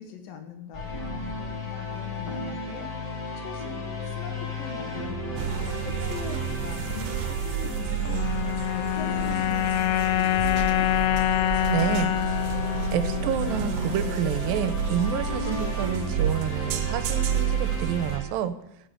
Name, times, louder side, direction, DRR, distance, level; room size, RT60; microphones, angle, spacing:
voice 1, 0.0-8.3 8.6-10.9, left 6 dB, 70° left, 5 dB, 3.2 m, -42 dB
sound 1, 0.7-18.2, left 1 dB, 30° left, 3.8 m, -34 dB
sound 2, 5.4-18.2, right 9 dB, 70° right, 2.3 m, -31 dB
sound 3, 8.1-14.5, left 14 dB, 85° left, 1.6 m, -26 dB
voice 2, 11.7-12.1 12.9-18.5, right 9 dB, 85° right, 12 dB, 2.5 m, -28 dB
14.5 x 6.9 x 7.8 m, 0.78 s
omnidirectional pair, 4.1 m